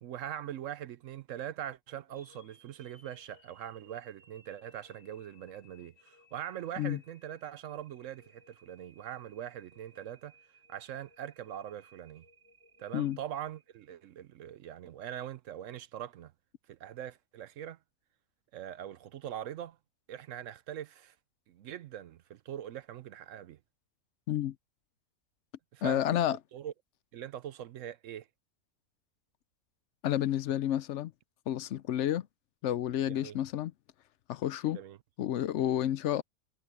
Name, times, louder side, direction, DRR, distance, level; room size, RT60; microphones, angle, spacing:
voice 1, 0.0-10.3 10.7-12.3 12.8-16.3 16.7-17.8 18.5-19.8 20.1-21.2 21.5-23.6 25.7-26.2 26.5-26.7 27.1-28.3 33.1-33.4 34.7-35.0, right 10 dB, 70° right, 0.9 m, -42 dB
sound 1, 2.1-14.2, equal, 20° right, 5.6 m, -63 dB
voice 2, 25.8-26.4 30.0-31.1 31.5-32.3 32.6-33.7 34.3-34.8 35.2-36.2, left 11 dB, 65° left, 0.8 m, -30 dB
omnidirectional pair, 1.5 m